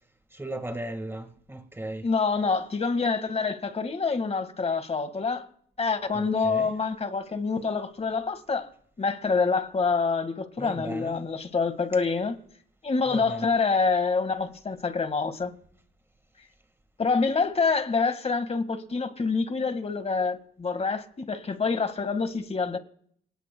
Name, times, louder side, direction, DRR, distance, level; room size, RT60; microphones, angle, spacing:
voice 1, 0.3-2.1 6.1-6.7 10.6-11.1 13.1-13.5, right 1 dB, 10° right, 1.7 m, -36 dB
voice 2, 2.0-5.5 5.8-8.7 9.0-12.4 12.8-15.5 17.0-22.8, left 4 dB, 30° left, 1.8 m, -26 dB
28.0 x 18.5 x 2.3 m
cardioid pair, 90°, 20 cm